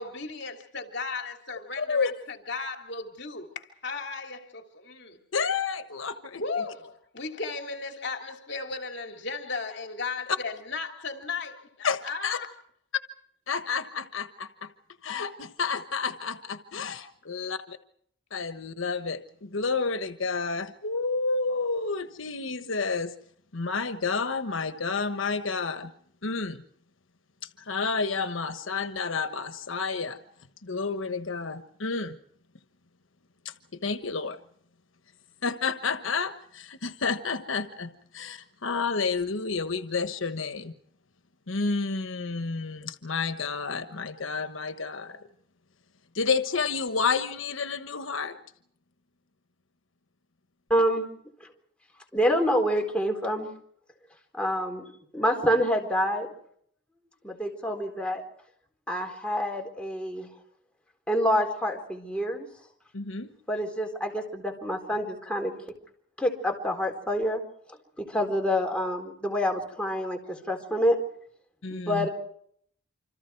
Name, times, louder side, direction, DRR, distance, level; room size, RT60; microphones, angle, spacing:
voice 1, 0.0-5.2 6.4-12.5, left 4 dB, 55° left, 3.1 m, -36 dB
voice 2, 1.8-2.1 5.3-6.6 11.8-12.4 13.5-14.7 15.0-17.8 18.3-23.1 23.5-25.9 26.2-26.6 27.4-30.2 30.6-32.2 33.4-34.4 35.4-40.7 41.5-45.2 46.1-48.4 62.9-63.3 71.6-72.1, left 4 dB, 80° left, 1.2 m, -30 dB
voice 3, 50.7-51.1 52.1-53.5 54.3-54.8 55.1-56.3 57.2-58.2 58.9-60.3 61.1-62.5 63.5-65.5 66.2-67.4 68.0-71.0 71.7-72.1, equal, 5° left, 4.1 m, -27 dB
28.0 x 26.0 x 4.7 m
head